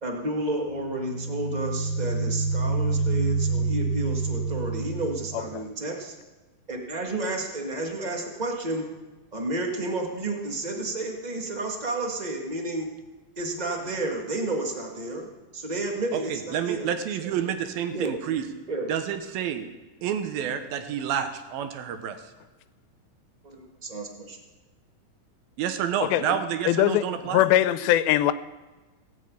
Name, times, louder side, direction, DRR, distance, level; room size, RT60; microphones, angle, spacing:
voice 1, 0.0-6.1 6.7-8.8 9.3-12.9 13.4-16.9 17.2-17.3 17.9-18.1 18.7-18.9 23.4-24.4, right 2 dB, 60° right, 1 dB, 0.4 m, -31 dB
sound 1, 0.7-5.5, right 3 dB, 40° left, 2.2 m, -27 dB
voice 2, 5.3-5.7 26.1-26.4 26.7-27.0 27.3-28.3, left 13 dB, 90° left, 13 dB, 2.5 m, -21 dB
voice 3, 16.3-18.4 18.9-19.7 20.0-22.2 25.6-27.4, right 9 dB, 85° right, 8 dB, 3.0 m, -29 dB
18.0 x 7.3 x 8.5 m, 1.2 s
omnidirectional pair, 4.2 m